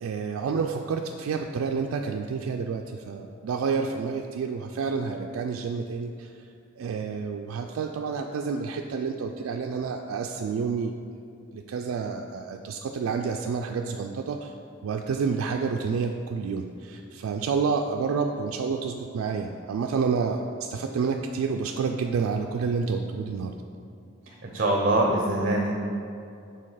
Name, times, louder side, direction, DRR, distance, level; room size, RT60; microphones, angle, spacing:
voice 1, 0.0-6.3 6.8-10.9 11.5-14.5 14.8-23.5, right 5 dB, 85° right, 3 dB, 0.3 m, -29 dB
voice 2, 24.3-25.8, right 1 dB, 40° right, -1 dB, 0.6 m, -24 dB
5.2 x 3.9 x 5.5 m, 2.5 s
head